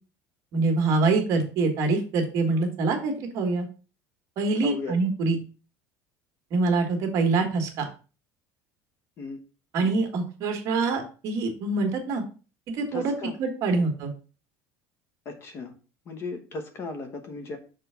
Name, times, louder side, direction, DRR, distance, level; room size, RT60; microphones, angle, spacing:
voice 1, 0.5-3.7 4.4-5.4 6.5-7.9 9.7-12.2 12.7-13.1 13.4-14.1, right 3 dB, 45° right, 4 dB, 1.6 m, -25 dB
voice 2, 4.6-5.0 9.2-9.4 12.9-13.3 13.7-13.9 15.2-15.7 16.1-17.6, left 3 dB, 35° left, 7 dB, 1.1 m, -36 dB
5.9 x 3.4 x 5.6 m, 0.35 s
cardioid pair, 155°, 7 cm